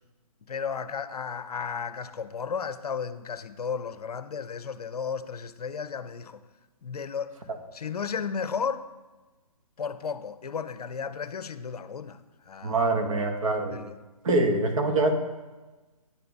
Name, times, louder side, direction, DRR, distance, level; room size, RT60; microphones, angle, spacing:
voice 1, 0.5-6.4 6.8-7.3 7.7-8.9 9.8-12.2 12.5-12.8 13.7-14.0, left 6 dB, 75° left, 0.5 m, -34 dB
voice 2, 12.6-13.8 14.2-15.1, right 2 dB, 55° right, 1.1 m, -24 dB
9.8 x 3.4 x 4.0 m
figure-of-eight pair, 140°, 20 cm